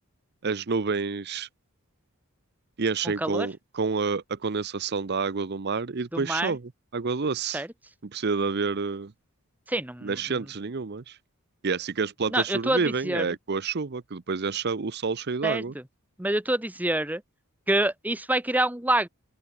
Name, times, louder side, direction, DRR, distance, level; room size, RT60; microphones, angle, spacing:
voice 1, 0.4-1.5 2.8-7.6 8.0-9.1 10.0-11.2 11.6-15.7, right 4 dB, 50° right, 0.7 m, -29 dB
voice 2, 3.2-3.5 6.1-6.5 7.5-7.7 9.7-10.2 12.3-13.3 15.4-15.6 16.2-17.2 17.7-19.1, right 1 dB, 5° right, 1.1 m, -26 dB
open air
head